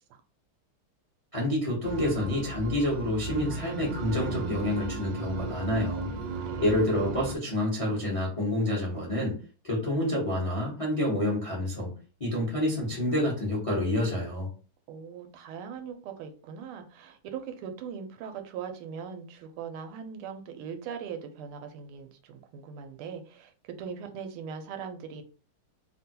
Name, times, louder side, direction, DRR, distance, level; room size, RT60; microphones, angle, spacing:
voice 1, 1.3-6.1 6.6-9.3 9.6-11.9 12.2-14.5, left 1 dB, 60° left, -4 dB, 0.3 m, -28 dB
sound 1, 1.8-7.4, right 4 dB, 70° right, 1.2 m, -35 dB
voice 2, 6.4-6.7 14.9-23.5 23.8-25.2, right 7 dB, 90° right, 6 dB, 1.5 m, -40 dB
3.5 x 2.2 x 2.8 m, 0.38 s
omnidirectional pair, 2.4 m